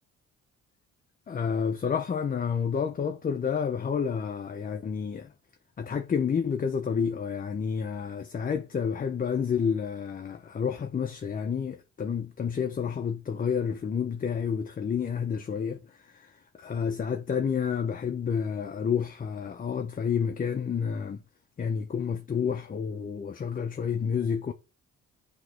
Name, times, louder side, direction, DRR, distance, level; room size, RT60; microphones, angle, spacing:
voice 1, 1.3-5.3 5.8-21.2 21.6-24.5, left 6 dB, 30° left, 0.5 m, -30 dB
8.2 x 3.0 x 4.6 m
cardioid pair, 90°, 30 cm